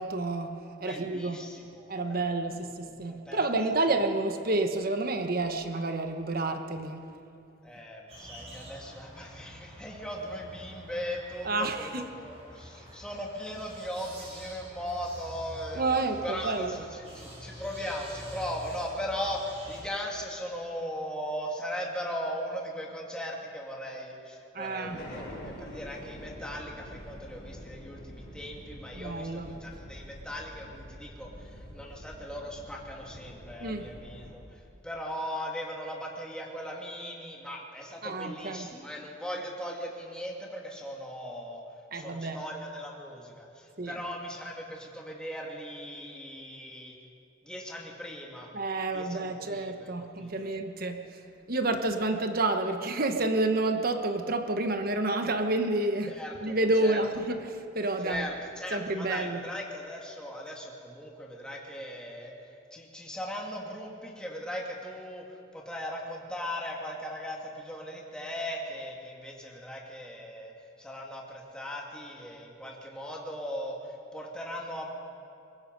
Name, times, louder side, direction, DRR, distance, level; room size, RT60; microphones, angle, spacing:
voice 1, 0.0-1.4 1.9-7.1 11.5-12.1 15.8-16.7 24.5-25.0 28.9-29.5 33.6-33.9 38.0-38.7 41.9-42.4 43.8-43.9 48.5-51.2 51.5-56.1 56.4-58.3 58.7-59.4, right 2 dB, 50° right, 6 dB, 1.2 m, -29 dB
voice 2, 0.8-2.5 2.8-3.4 3.7-3.8 7.6-41.6 41.9-47.0 47.4-48.5 48.9-50.6 56.1-57.0 58.0-70.5 70.8-74.9, equal, 5° left, -2 dB, 2.5 m, -38 dB
sound 1, 8.1-19.8, equal, 30° right, 6.2 m, -47 dB
sound 2, 24.8-34.3, equal, 55° left, 6.1 m, -46 dB
23.5 x 21.0 x 5.4 m, 2.5 s
head